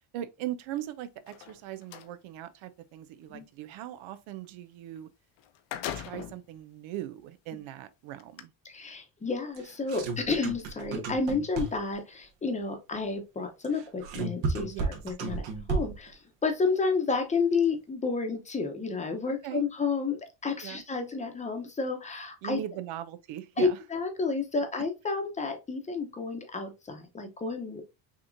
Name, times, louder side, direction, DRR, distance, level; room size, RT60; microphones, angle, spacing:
voice 1, 0.1-5.1 5.9-8.5 14.7-14.9 19.3-19.6 20.6-20.8 22.4-23.8, right 12 dB, 85° right, 0.7 m, -39 dB
sound 1, 1.2-2.1 5.0-5.1 5.4-6.5 7.1-7.2 8.2-8.4, left 10 dB, 65° left, 0.7 m, -39 dB
voice 2, 8.6-22.6 23.6-27.8, left 4 dB, 15° left, 0.8 m, -31 dB
sound 2, 9.5-12.0 13.6-16.1, right 4 dB, 70° right, 1.5 m, -33 dB
6.1 x 3.0 x 2.6 m
cardioid pair, 160°, 46 cm